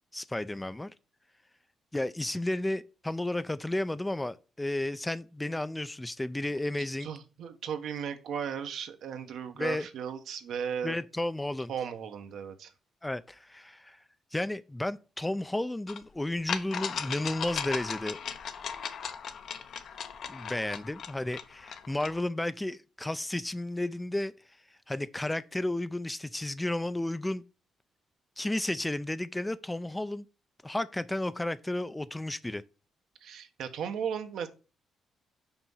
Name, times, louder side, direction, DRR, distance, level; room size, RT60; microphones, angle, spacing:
voice 1, 0.1-0.9 1.9-7.1 9.6-9.9 10.8-11.7 13.0-14.0 14.3-18.2 20.3-24.3 24.9-27.4 28.4-30.3 30.6-32.6, left 1 dB, 10° left, 0.4 m, -32 dB
voice 2, 7.0-10.9 11.7-12.7 33.2-34.5, right 7 dB, 75° right, 1.0 m, -36 dB
sound 1, 15.9-16.0 16.5-22.2, left 7 dB, 60° left, 0.8 m, -37 dB
5.9 x 4.6 x 5.5 m
cardioid pair, 120°, 0 cm